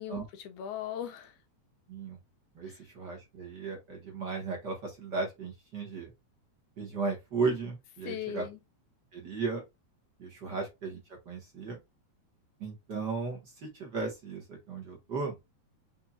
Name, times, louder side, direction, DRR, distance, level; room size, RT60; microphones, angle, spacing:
voice 1, 0.0-1.4 2.7-2.8 8.0-8.6 10.5-10.6, left 9 dB, 85° left, 2.4 m, -39 dB
voice 2, 1.9-2.2 2.5-6.1 6.8-8.5 9.1-9.6 10.2-11.8 12.6-15.4, right 4 dB, 40° right, 1.9 m, -35 dB
5.9 x 3.4 x 2.5 m
omnidirectional pair, 3.4 m